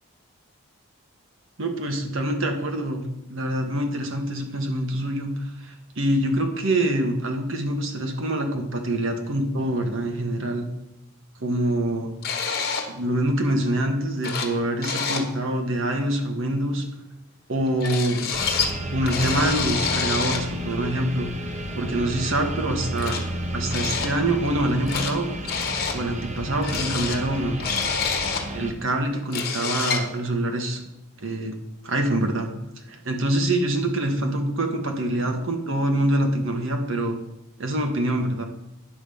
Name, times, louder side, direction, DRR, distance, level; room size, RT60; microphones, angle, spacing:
voice 1, 1.6-3.0 3.3-5.3 5.6-10.7 11.4-12.1 12.9-16.8 17.5-18.3 18.9-21.3 21.7-23.2 23.5-25.3 25.9-27.6 28.5-30.8 31.2-31.5 31.8-32.5 32.9-37.2 37.6-38.5, right 1 dB, 70° right, 4 dB, 1.5 m, -25 dB
sound 1, 12.2-12.9 13.9-14.0 14.2-14.6 14.8-15.3 17.8-18.7 19.1-20.5 21.9-22.0 23.0-23.2 23.7-24.1 24.5-25.1 25.5-26.0 26.6-28.5 28.9-29.0 29.2-30.1, left 5 dB, 45° left, 1.2 m, -27 dB
sound 2, 18.3-28.7, equal, 35° right, 1.0 m, -32 dB
9.9 x 5.1 x 7.0 m, 0.88 s
head